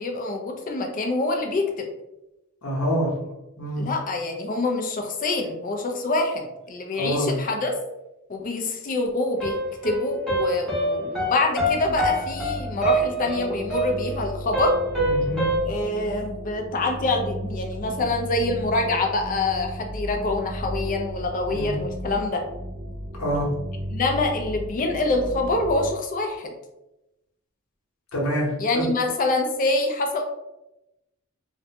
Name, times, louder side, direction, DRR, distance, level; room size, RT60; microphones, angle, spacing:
voice 1, 0.0-1.9 3.8-7.7 8.3-9.5 9.8-14.7 15.6-22.5 23.9-26.5 28.6-30.2, left 2 dB, 40° left, 3 dB, 0.4 m, -25 dB
voice 2, 2.6-3.1 3.6-3.9 6.9-7.4 15.0-15.5 21.5-21.8 23.2-23.5 28.1-28.5 28.7-28.8, equal, 80° left, -3 dB, 0.9 m, -26 dB
sound 1, 9.4-15.6, right 1 dB, 5° left, 0.8 m, -25 dB
sound 2, 11.6-25.9, equal, 50° right, 0.6 m, -35 dB
2.5 x 2.1 x 2.7 m, 0.93 s
head